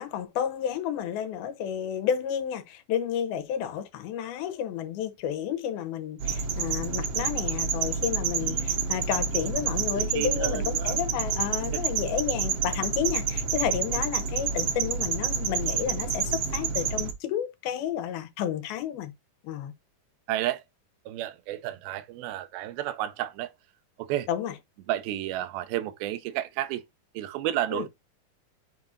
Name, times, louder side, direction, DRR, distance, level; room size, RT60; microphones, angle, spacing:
voice 1, 0.0-19.1 19.4-19.7 24.3-24.6 27.7-27.9, left 9 dB, 90° left, 2.9 m, -31 dB
sound 1, 6.2-17.1, right 6 dB, 70° right, 1.5 m, -28 dB
voice 2, 8.4-8.7 9.9-11.0 11.7-11.8 20.3-20.6 21.1-23.5 24.0-24.3 24.9-26.8 27.2-27.9, right 13 dB, 85° right, 2.6 m, -31 dB
9.1 x 5.0 x 2.7 m
omnidirectional pair, 4.2 m